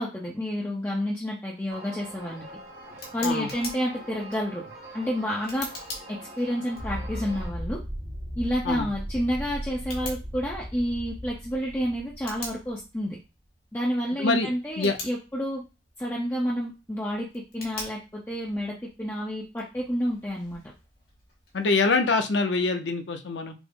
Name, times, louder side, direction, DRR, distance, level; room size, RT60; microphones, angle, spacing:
voice 1, 0.0-2.5 3.1-4.6 4.9-5.7 6.1-7.8 8.4-13.2 13.7-15.6 16.0-20.6, equal, 10° left, -3 dB, 0.6 m, -29 dB
sound 1, 1.7-7.5, right 2 dB, 60° right, 1.4 m, -44 dB
Tick, 2.0-21.6, left 2 dB, 55° left, 1.9 m, -46 dB
sound 2, 6.8-12.9, equal, 75° right, 1.9 m, -37 dB
voice 2, 14.2-14.5 14.8-15.0 21.5-23.5, left 3 dB, 85° left, 7 dB, 0.6 m, -24 dB
6.0 x 2.0 x 3.6 m, 0.29 s
head